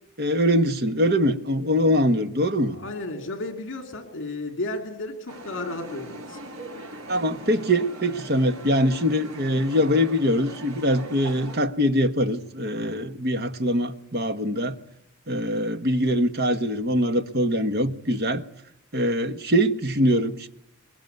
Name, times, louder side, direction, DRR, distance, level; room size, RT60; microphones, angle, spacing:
voice 1, 0.2-2.8 7.1-14.8 15.3-18.4 18.9-20.5, equal, 45° right, 1.6 m, -23 dB
voice 2, 2.6-6.4, left 2 dB, 60° left, 2.9 m, -33 dB
sound 1, 5.3-11.6, right 1 dB, 70° right, 4.9 m, -40 dB
23.0 x 22.0 x 9.4 m
head